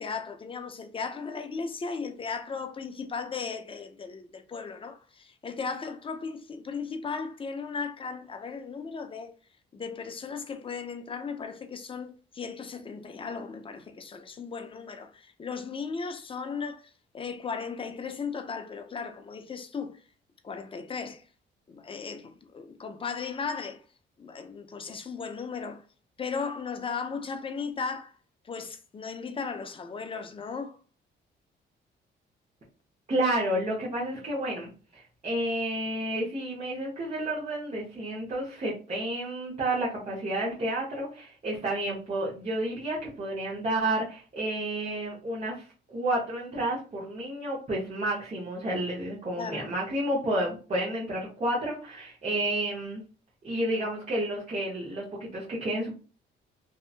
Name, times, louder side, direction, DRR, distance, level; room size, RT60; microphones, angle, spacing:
voice 1, 0.0-9.3 9.7-20.0 20.4-21.2 21.7-23.8 24.2-25.8 26.2-28.1 28.4-30.8 49.4-49.7, left 5 dB, 25° left, 0.5 m, -36 dB
voice 2, 33.1-53.0 53.4-55.9, right 1 dB, 35° right, 1.0 m, -31 dB
2.8 x 2.4 x 2.4 m
cardioid pair, 90°, 20 cm